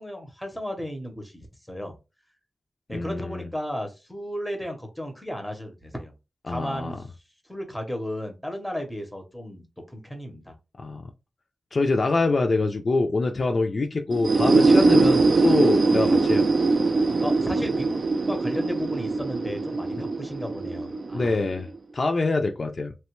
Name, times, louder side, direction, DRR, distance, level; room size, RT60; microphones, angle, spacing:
voice 1, 0.0-1.9 2.9-6.1 6.5-7.0 7.5-10.5 17.2-18.0 18.3-21.3, equal, ahead, 0.6 m, -34 dB
voice 2, 2.9-3.5 6.5-7.0 10.8-11.1 11.7-16.5 21.1-21.7 21.9-22.9, left 3 dB, 45° left, 0.3 m, -25 dB
sound 1, 14.1-21.8, right 3 dB, 55° right, 0.3 m, -22 dB
3.1 x 2.1 x 2.9 m
wide cardioid pair, 145°, 0 cm